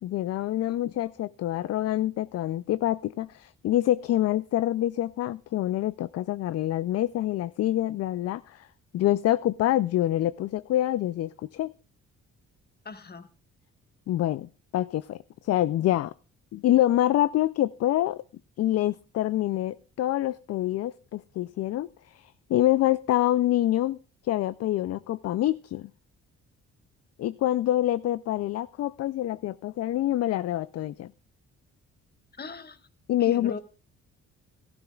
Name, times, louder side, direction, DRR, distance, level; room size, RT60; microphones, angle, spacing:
voice 1, 0.0-8.7 8.9-11.7 14.1-16.1 16.5-18.2 18.6-24.0 24.2-25.9 27.2-31.1 33.1-33.6, left 13 dB, 55° left, 0.4 m, -26 dB
voice 2, 12.8-13.3 32.3-32.9 33.2-33.6, left 4 dB, 30° left, 1.4 m, -39 dB
15.5 x 13.5 x 2.3 m
cardioid pair, 90°, 30 cm